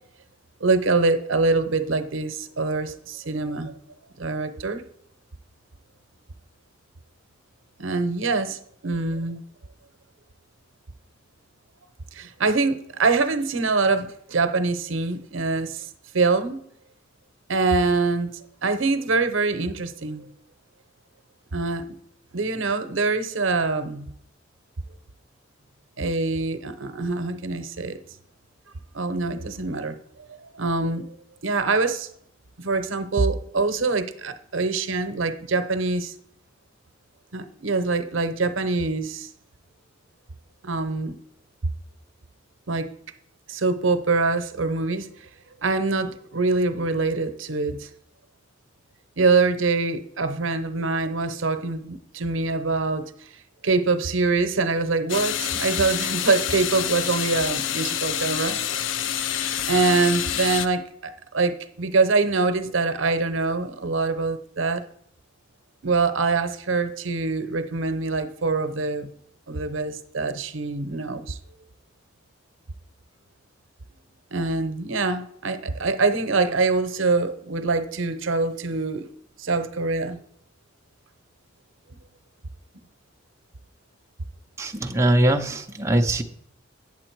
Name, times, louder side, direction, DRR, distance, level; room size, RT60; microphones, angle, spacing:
voice 1, 0.6-3.8 4.2-4.8 7.8-9.4 12.1-15.9 16.1-16.6 17.5-20.3 21.5-21.8 22.3-24.1 26.0-28.0 28.9-31.1 31.4-32.1 32.6-36.1 37.3-39.3 40.6-41.2 42.7-42.9 43.5-45.1 45.6-47.9 49.2-53.1 53.6-58.6 59.7-64.8 65.8-69.1 69.5-71.4 74.3-79.1 79.4-80.2, right 3 dB, 75° right, 9 dB, 0.7 m, -24 dB
sound 1, 55.1-60.7, left 9 dB, 70° left, 0.5 m, -27 dB
voice 2, 84.6-86.2, right 1 dB, 15° right, 3 dB, 0.6 m, -21 dB
8.7 x 7.1 x 4.5 m, 0.69 s
head